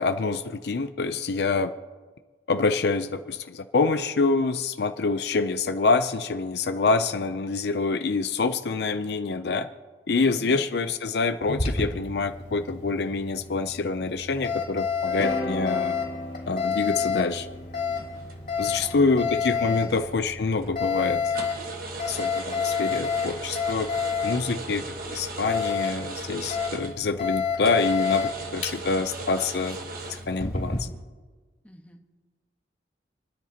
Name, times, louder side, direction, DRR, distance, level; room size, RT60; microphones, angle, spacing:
voice 1, 0.0-1.7 2.5-9.7 10.1-16.0 16.5-17.5 18.6-21.3 22.1-23.9 24.2-24.9 25.1-29.8 30.1-30.9, left 4 dB, 65° left, 9 dB, 0.5 m, -26 dB
Alarm, 11.4-30.8, left 5 dB, 45° left, 3.1 m, -30 dB
sound 1, 15.1-19.2, left 1 dB, 85° left, 2.3 m, -36 dB
sound 2, 18.0-18.8 19.2-20.1 20.5-20.8 21.3-27.2 27.6-30.9, right 3 dB, 55° right, 1.4 m, -38 dB
voice 2, 18.7-19.2 31.6-32.1, left 1 dB, 10° left, 2 dB, 1.3 m, -48 dB
29.5 x 10.0 x 2.9 m, 1.4 s
head